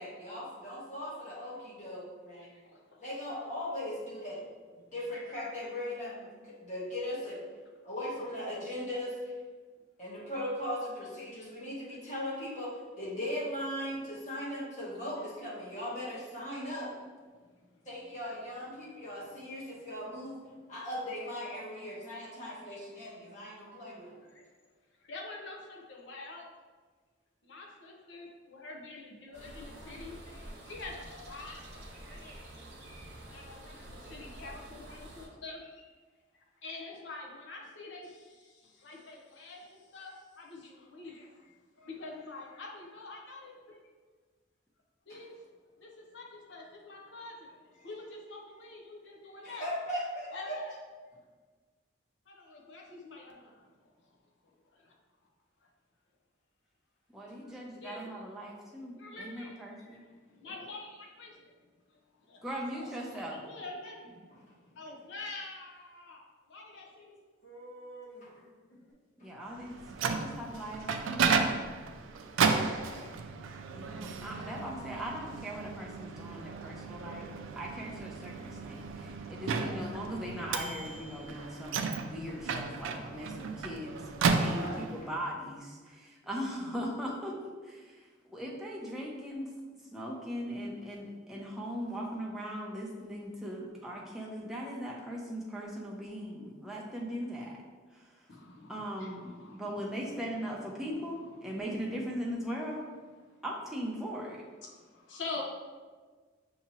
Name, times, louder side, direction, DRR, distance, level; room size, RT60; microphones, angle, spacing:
voice 1, 0.0-2.5 3.0-4.4 4.8-7.4 7.8-9.3 10.0-16.9 17.8-20.4 20.7-24.2 45.1-45.2 49.4-50.6 68.2-68.3 72.6-73.1 79.5-79.8 84.5-84.7, left 1 dB, 40° left, -7 dB, 1.2 m, -38 dB
voice 2, 2.3-3.1 8.7-8.8 14.1-14.2 14.5-14.6 17.4-18.0 18.6-19.1 19.5-19.8 22.0-22.1 24.2-24.5 25.0-26.5 27.4-32.5 33.3-35.8 36.6-43.8 45.1-45.5 45.8-49.7 50.3-50.7 52.3-53.7 54.0-54.2 54.4-54.9 55.6-55.7 57.4-57.5 57.8-58.2 58.9-61.6 61.9-62.9 63.3-64.2 64.5-67.2 98.3-102.0 103.3-103.4 104.6-105.4, left 3 dB, 70° left, -1 dB, 0.8 m, -47 dB
sound 1, 29.3-35.3, right 1 dB, 60° right, 0.9 m, -48 dB
voice 3, 57.1-60.0 62.4-63.4 69.2-71.3 73.7-77.3 77.6-87.4 87.6-89.5 89.9-97.6 97.9-98.1 98.7-99.3 99.6-102.8 103.4-104.4, equal, ahead, -3 dB, 0.6 m, -39 dB
sound 2, 63.8-64.4 67.4-68.9, right 1 dB, 90° left, 1.1 m, -50 dB
Microwave oven, 69.6-85.1, right 5 dB, 85° right, 0.3 m, -33 dB
5.8 x 2.8 x 2.9 m, 1.4 s
head